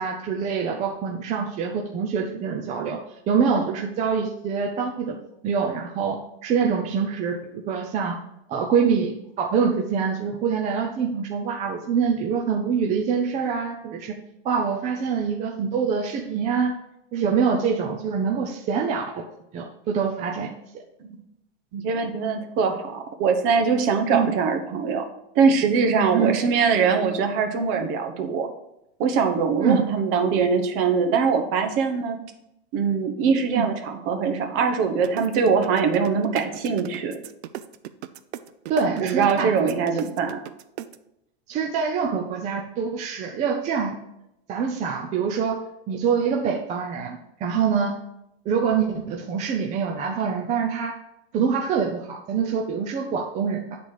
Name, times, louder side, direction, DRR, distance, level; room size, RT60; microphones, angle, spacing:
voice 1, 0.0-3.0 3.3-5.2 5.4-8.2 8.5-14.2 14.4-16.8 17.1-19.2 19.5-20.5 24.1-24.3 26.1-26.4 29.6-29.9 33.5-33.7 38.7-39.7 41.5-44.0 44.5-48.0 48.5-51.0 51.3-53.8, right 6 dB, 20° right, 1 dB, 0.5 m, -25 dB
voice 2, 21.7-25.0 25.3-28.5 29.0-32.2 32.7-37.2 39.0-40.4, right 5 dB, 40° right, 5 dB, 1.0 m, -22 dB
sound 1, 35.0-41.0, right 13 dB, 80° right, 0.6 m, -36 dB
9.1 x 4.2 x 4.8 m, 0.83 s
supercardioid pair, 160°, 32 cm